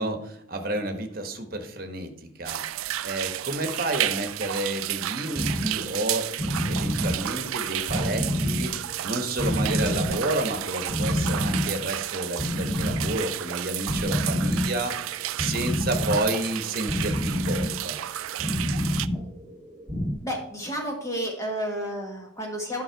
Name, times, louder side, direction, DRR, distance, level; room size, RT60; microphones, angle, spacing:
voice 1, 0.0-2.1 2.4-8.7 9.0-18.0, right 1 dB, 45° right, 6 dB, 1.2 m, -30 dB
sound 1, 2.5-19.1, right 13 dB, 90° right, 0.4 m, -32 dB
sound 2, 5.3-20.1, left 1 dB, 25° right, 2.5 m, -29 dB
voice 2, 20.2-22.8, equal, 15° left, 0 dB, 1.6 m, -31 dB
9.7 x 5.6 x 4.6 m, 0.76 s
head